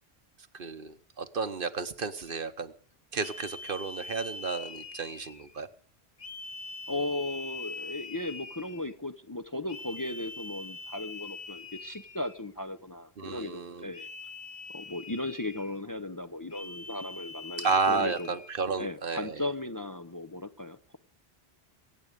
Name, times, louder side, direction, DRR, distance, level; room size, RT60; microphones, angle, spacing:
voice 1, 0.5-2.7 3.1-5.7 13.2-13.9 17.6-19.4, right 4 dB, 55° right, 10 dB, 1.2 m, -32 dB
sound 1, 2.3-2.5 3.2-5.6 6.2-8.9 9.7-12.5 13.9-15.8 16.5-18.6, left 3 dB, 45° left, 1.0 m, -43 dB
voice 2, 6.9-14.1 14.7-18.3 18.8-21.0, left 2 dB, 20° left, 7 dB, 0.7 m, -36 dB
24.5 x 8.7 x 5.2 m, 0.43 s
omnidirectional pair, 1.1 m